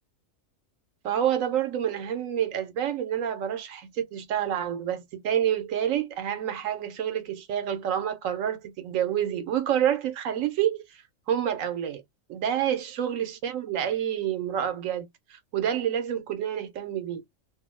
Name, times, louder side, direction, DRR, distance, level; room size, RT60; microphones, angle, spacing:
voice 1, 1.0-10.8 11.3-12.0 12.3-17.2, right 10 dB, 80° right, 1.1 m, -28 dB
2.6 x 2.1 x 3.0 m
omnidirectional pair, 1.4 m